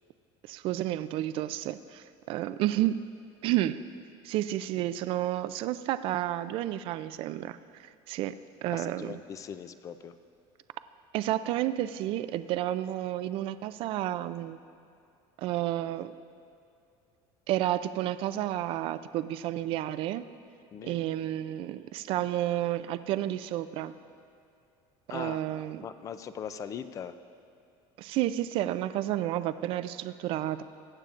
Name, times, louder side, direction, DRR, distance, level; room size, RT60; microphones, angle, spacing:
voice 1, 0.4-3.0 3.4-3.8 4.2-8.4 8.6-9.2 11.1-14.6 15.4-16.1 17.5-20.2 20.8-24.0 25.1-25.8 28.0-30.6, right 13 dB, 50° right, 13 dB, 0.4 m, -31 dB
voice 2, 8.7-10.1 20.7-21.0 25.1-27.1, left 8 dB, 30° left, 12 dB, 0.4 m, -40 dB
21.0 x 8.9 x 2.5 m, 2.5 s
cardioid pair, 150°, 12 cm